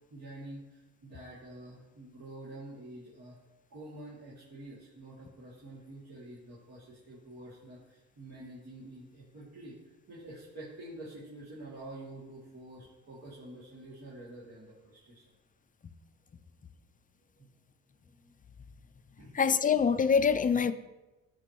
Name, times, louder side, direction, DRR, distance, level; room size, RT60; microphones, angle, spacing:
voice 1, 0.1-3.4 3.7-9.8 10.1-15.2 17.3-17.5 18.1-18.3 19.2-19.4, right 1 dB, 55° right, -8 dB, 2.6 m, -48 dB
voice 2, 19.3-20.7, left 6 dB, 30° left, 12 dB, 0.5 m, -25 dB
14.5 x 5.1 x 3.1 m, 1.0 s
cardioid pair, 90°, 30 cm